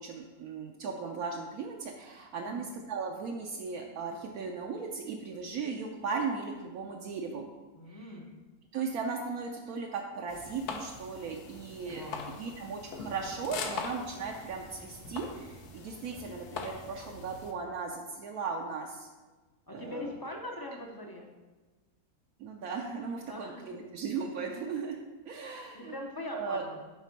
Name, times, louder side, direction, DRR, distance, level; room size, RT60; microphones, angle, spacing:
voice 1, 0.0-7.5 7.9-8.1 8.7-19.1 19.7-20.0 22.4-25.0 25.3-26.0 26.3-26.6, right 5 dB, 75° right, 1 dB, 1.1 m, -37 dB
voice 2, 7.7-8.3 11.9-12.4 19.7-21.3 23.3-23.6 25.7-26.8, left 1 dB, 30° left, 1 dB, 0.4 m, -42 dB
sound 1, 10.3-17.5, left 4 dB, 90° left, 1.3 m, -42 dB
7.3 x 4.3 x 5.2 m, 1.2 s
omnidirectional pair, 1.6 m